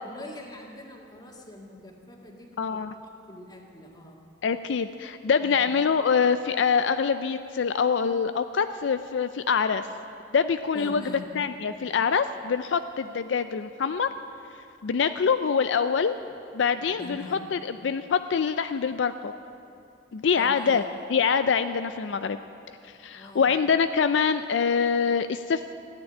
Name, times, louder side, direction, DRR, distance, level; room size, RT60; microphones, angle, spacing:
voice 1, 0.0-4.2 5.4-5.6 10.7-11.3 16.8-17.4 20.4-20.8 23.1-23.5, left 1 dB, 20° left, 0 dB, 1.9 m, -43 dB
voice 2, 2.6-2.9 4.4-9.9 10.3-11.0 11.4-14.1 14.8-16.1 16.5-17.2 17.5-19.3 20.1-20.8 21.1-22.4 23.0-25.7, left 6 dB, 70° left, 10 dB, 0.4 m, -25 dB
14.5 x 9.8 x 9.9 m, 2.6 s
head